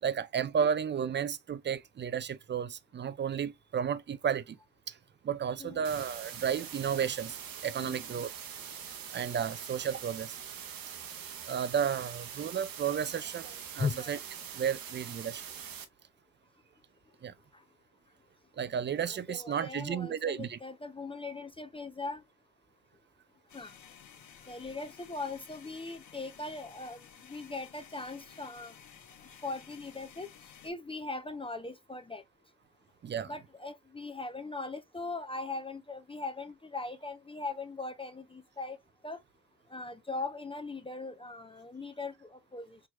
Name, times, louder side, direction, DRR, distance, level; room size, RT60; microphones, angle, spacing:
voice 1, 0.0-4.6 4.9-5.0 5.2-8.3 9.1-10.4 11.5-14.2 14.5-15.4 17.2-17.3 18.6-20.6 33.0-33.3, right 7 dB, 30° right, 0.5 m, -33 dB
sound 1, 5.8-15.8, right 8 dB, 65° right, 1.0 m, -43 dB
voice 2, 13.5-14.2 17.5-17.6 19.0-22.2 23.5-23.7 24.5-28.7 29.4-30.3 30.6-32.2 33.2-38.8 39.0-39.2 39.7-42.8, left 3 dB, 15° left, 0.5 m, -40 dB
sound 2, 23.5-30.7, left 8 dB, 50° left, 1.1 m, -54 dB
4.6 x 3.0 x 2.2 m
supercardioid pair, 65°, 37 cm